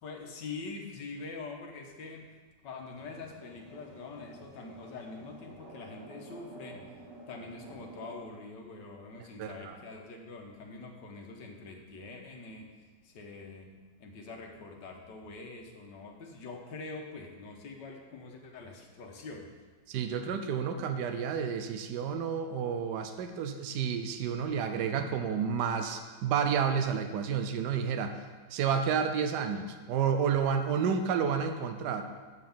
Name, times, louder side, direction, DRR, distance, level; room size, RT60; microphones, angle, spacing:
voice 1, 0.0-2.3 2.6-6.9 7.3-12.7 13.0-13.7 14.0-19.5, left 3 dB, 80° left, 2 dB, 1.7 m, -44 dB
sound 1, 2.9-8.1, right 1 dB, 15° right, 1.0 m, -50 dB
voice 2, 9.4-9.8 19.9-28.2 28.5-32.0, right 7 dB, 75° right, 7 dB, 1.3 m, -30 dB
7.5 x 5.8 x 7.1 m, 1.4 s
omnidirectional pair, 1.9 m